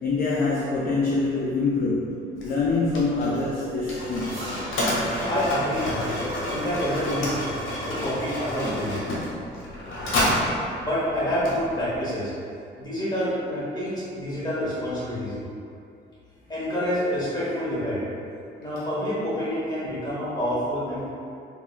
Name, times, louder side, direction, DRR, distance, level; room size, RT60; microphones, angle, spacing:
voice 1, 0.0-4.4, left 3 dB, 50° left, -5 dB, 0.4 m, -25 dB
Mechanisms, 2.4-12.0, left 1 dB, 85° left, 0.7 m, -29 dB
sound 1, 4.2-10.3, right 1 dB, 80° right, 0.9 m, -48 dB
voice 2, 5.3-7.4 7.8-9.3 10.8-12.3 12.8-15.4 16.5-18.0 18.6-21.1, equal, 20° left, -10 dB, 1.2 m, -28 dB
3.5 x 2.2 x 2.3 m, 2.5 s
cardioid pair, 90°, 20 cm